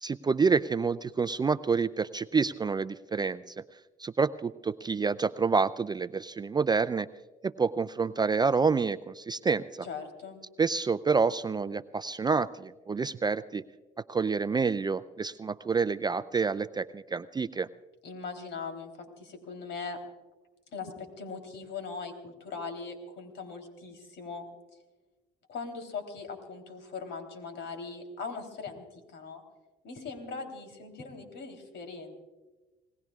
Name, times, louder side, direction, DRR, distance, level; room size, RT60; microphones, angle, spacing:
voice 1, 0.0-3.5 4.0-7.1 7.4-9.9 10.6-13.6 14.1-17.7, right 5 dB, 20° right, 14 dB, 0.4 m, -28 dB
voice 2, 9.8-10.4 18.0-20.0 20.7-24.5 25.5-29.4 29.8-32.1, left 4 dB, 65° left, 5 dB, 3.5 m, -40 dB
27.5 x 19.5 x 2.4 m, 1.2 s
cardioid pair, 95°, 20 cm